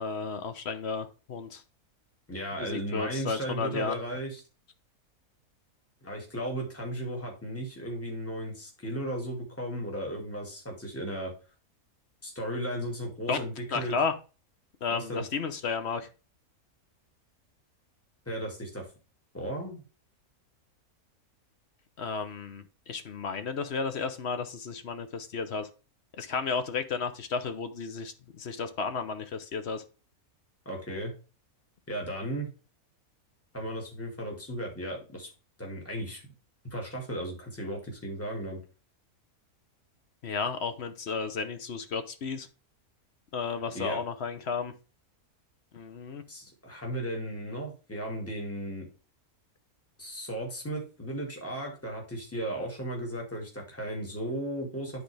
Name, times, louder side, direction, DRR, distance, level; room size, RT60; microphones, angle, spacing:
voice 1, 0.0-1.6 2.6-4.0 13.3-13.4 13.7-14.1 14.8-16.1 22.0-25.7 26.2-29.8 40.2-42.5 43.3-44.7 45.7-46.2, left 5 dB, 50° left, 9 dB, 1.0 m, -33 dB
voice 2, 2.3-4.4 6.0-11.3 12.2-14.0 14.9-15.2 18.3-18.9 19.3-19.8 30.7-31.1 31.9-32.5 33.5-35.3 35.6-36.2 36.7-38.6 43.7-44.0 46.3-48.9 50.0-55.0, right 1 dB, 10° left, 0 dB, 2.2 m, -35 dB
10.0 x 4.1 x 3.4 m, 0.33 s
omnidirectional pair, 1.5 m